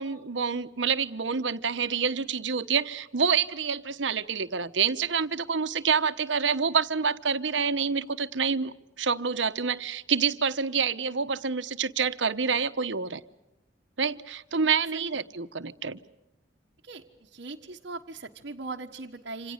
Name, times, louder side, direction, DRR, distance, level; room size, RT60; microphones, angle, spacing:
voice 1, 0.0-13.2 14.0-16.0, right 6 dB, 85° right, 13 dB, 1.0 m, -27 dB
voice 2, 16.8-19.5, right 3 dB, 60° right, -2 dB, 1.3 m, -39 dB
27.0 x 27.0 x 6.6 m, 0.95 s
head